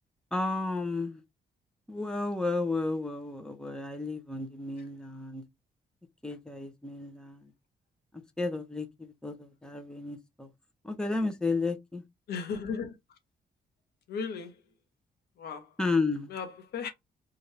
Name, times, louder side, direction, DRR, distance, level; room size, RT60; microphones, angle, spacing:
voice 1, 0.3-1.2 1.9-5.4 6.2-7.5 8.1-10.5 10.8-12.0 15.8-16.3, left 3 dB, 5° left, 0.7 m, -32 dB
voice 2, 12.3-13.2 14.1-14.7 15.4-15.8 16.3-16.9, left 6 dB, 75° left, 0.8 m, -36 dB
2.8 x 2.4 x 3.2 m
cardioid pair, 100°, 17 cm